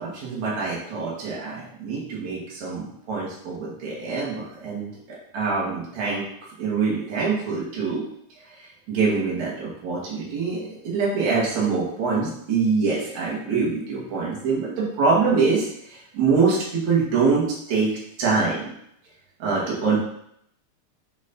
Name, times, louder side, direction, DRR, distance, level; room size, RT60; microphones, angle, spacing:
voice 1, 0.0-4.9 5.3-6.2 6.6-8.0 8.6-17.9 18.2-18.7 19.4-20.0, right 4 dB, 70° right, -5 dB, 3.2 m, -24 dB
9.3 x 4.3 x 4.2 m, 0.72 s
omnidirectional pair, 3.4 m